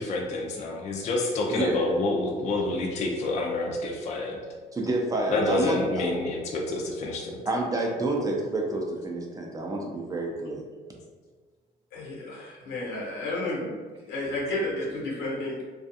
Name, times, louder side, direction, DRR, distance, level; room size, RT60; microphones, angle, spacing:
voice 1, 0.0-4.4 5.3-7.4, left 2 dB, 40° left, 0 dB, 0.4 m, -28 dB
voice 2, 1.5-2.0 4.7-6.0 7.4-10.6, right 2 dB, 20° right, 0 dB, 0.4 m, -28 dB
voice 3, 11.9-13.8 14.1-15.6, left 1 dB, 90° left, -4 dB, 1.0 m, -31 dB
2.4 x 2.4 x 2.6 m, 1.5 s
cardioid pair, 110°, 17 cm